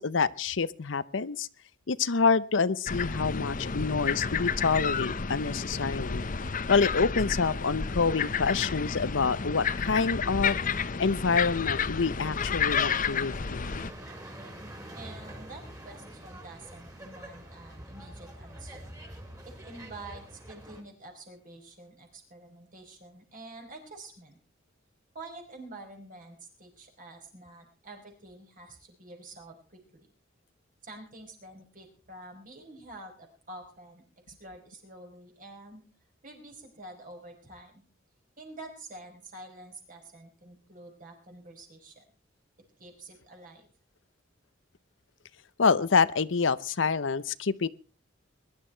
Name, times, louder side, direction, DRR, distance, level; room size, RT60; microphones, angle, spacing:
voice 1, 0.0-1.5 1.9-6.2 6.7-10.6 11.0-13.7 45.6-47.7, left 5 dB, 80° left, 16 dB, 0.7 m, -27 dB
sound 1, 2.9-13.9, left 6 dB, 45° left, 0.8 m, -31 dB
sound 2, 12.3-20.8, right 1 dB, 20° right, 4.3 m, -45 dB
voice 2, 14.9-18.9 19.4-24.4 25.1-30.0 30.8-35.8 36.2-37.8 38.4-42.0 42.8-43.7, right 2 dB, 45° right, 3 dB, 5.0 m, -48 dB
21.5 x 11.5 x 4.5 m, 0.37 s
head